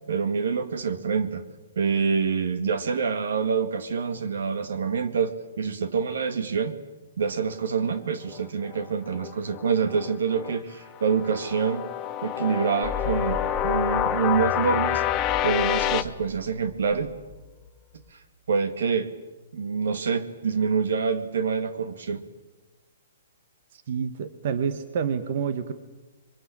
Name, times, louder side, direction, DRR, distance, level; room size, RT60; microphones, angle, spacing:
voice 1, 0.1-1.4 1.8-6.8 7.2-11.8 12.2-15.0 15.4-17.1 18.5-19.1 19.5-22.2, right 6 dB, 75° right, 10 dB, 2.2 m, -26 dB
sound 1, 8.3-10.6 11.0-16.0, left 12 dB, 25° left, 1.1 m, -28 dB
sound 2, 12.8-18.1, left 3 dB, ahead, 5.5 m, -35 dB
voice 2, 23.7-25.7, right 6 dB, 55° right, 10 dB, 1.6 m, -28 dB
24.5 x 23.5 x 8.8 m, 1.2 s
hypercardioid pair, 145°, 0 cm